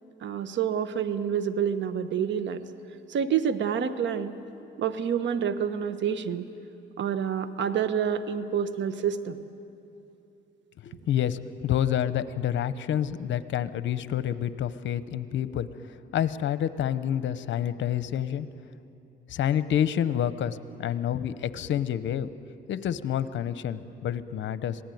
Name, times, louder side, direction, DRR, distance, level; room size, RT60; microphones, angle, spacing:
voice 1, 0.2-2.7 3.1-4.3 4.8-6.5 7.0-9.4, right 8 dB, 70° right, 11 dB, 1.2 m, -28 dB
voice 2, 10.8-15.7 16.1-18.5 19.3-22.3 22.7-24.8, left 10 dB, 70° left, 13 dB, 0.9 m, -28 dB
26.5 x 18.0 x 9.3 m, 2.8 s
cardioid pair, 90°, 20 cm